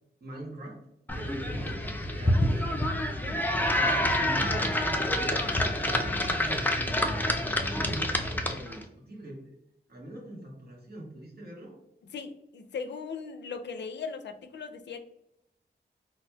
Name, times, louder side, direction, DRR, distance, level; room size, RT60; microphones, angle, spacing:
voice 1, 0.2-0.8 1.1-2.8 3.5-9.5 9.9-11.8, right 1 dB, 65° right, -2 dB, 1.1 m, -42 dB
sound 1, 1.1-8.8, left 1 dB, 10° left, 0.4 m, -27 dB
voice 2, 12.1-15.1, left 5 dB, 85° left, 6 dB, 0.4 m, -38 dB
4.1 x 2.1 x 2.2 m, 0.82 s
wide cardioid pair, 80°, 18 cm